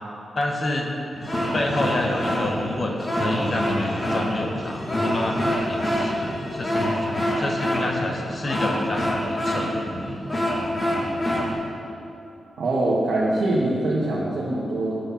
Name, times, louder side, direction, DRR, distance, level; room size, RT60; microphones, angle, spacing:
voice 1, 0.4-0.9 1.5-9.9, left 2 dB, 45° left, 1 dB, 0.9 m, -28 dB
sound 1, 1.1-11.5, equal, 20° left, 1.3 m, -26 dB
voice 2, 12.6-15.0, right 2 dB, 75° right, -6 dB, 1.3 m, -23 dB
7.7 x 6.6 x 5.6 m, 2.8 s
wide cardioid pair, 105°, 0 cm